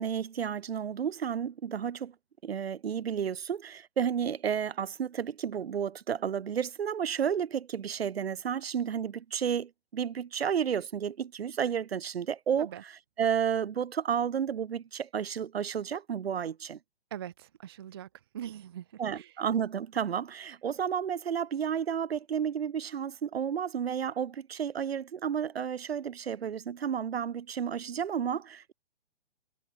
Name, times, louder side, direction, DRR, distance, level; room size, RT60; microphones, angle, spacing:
voice 1, 0.0-2.1 2.4-12.9 13.2-16.8 19.0-28.7, right 8 dB, 70° right, 1.7 m, -32 dB
voice 2, 17.1-18.1 18.3-19.3, right 10 dB, 25° right, 0.4 m, -42 dB
hypercardioid pair, 150°, 32 cm